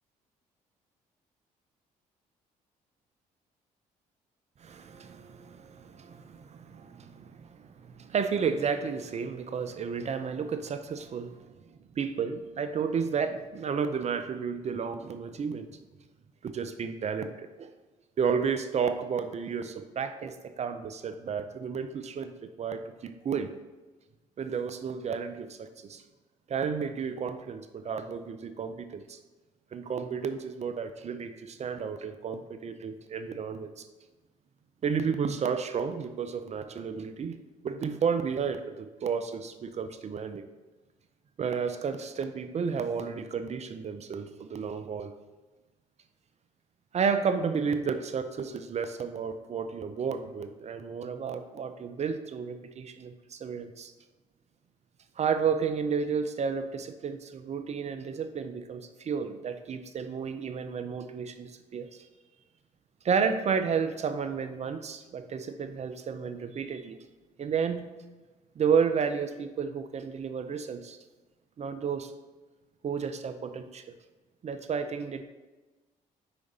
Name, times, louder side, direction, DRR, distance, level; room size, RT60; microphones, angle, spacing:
voice 1, 4.6-15.7 16.4-17.7 18.2-23.5 24.4-26.0 26.5-29.2 29.7-33.9 34.8-37.4 37.6-40.4 41.4-45.1 46.9-53.9 55.2-62.1 63.0-67.0 67.4-67.9 68.6-71.0 71.6-72.1 72.8-73.8 74.4-75.2, right 6 dB, 45° right, 10 dB, 0.5 m, -32 dB
5.1 x 4.8 x 4.0 m, 1.2 s
supercardioid pair, 60°, 16 cm